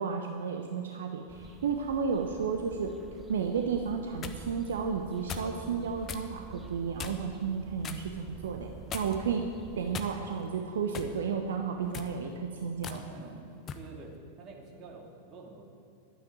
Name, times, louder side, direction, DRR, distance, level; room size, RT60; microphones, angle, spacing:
voice 1, 0.0-2.9 3.3-9.4 9.8-13.0, right 6 dB, 60° right, 4 dB, 0.9 m, -32 dB
sound 1, 1.3-10.1, right 4 dB, 10° right, 0.9 m, -49 dB
sound 2, 3.8-4.4 5.3-5.5 6.1-6.3 7.0-7.3 7.8-8.1 8.9-9.3 9.9-10.4 10.9-11.2 11.8-12.1 12.8-13.0 13.7-13.9, left 6 dB, 25° left, 1.1 m, -39 dB
voice 2, 12.9-15.6, right 4 dB, 30° right, 0 dB, 2.6 m, -48 dB
12.0 x 9.7 x 9.2 m, 2.5 s
figure-of-eight pair, 90°, 0 cm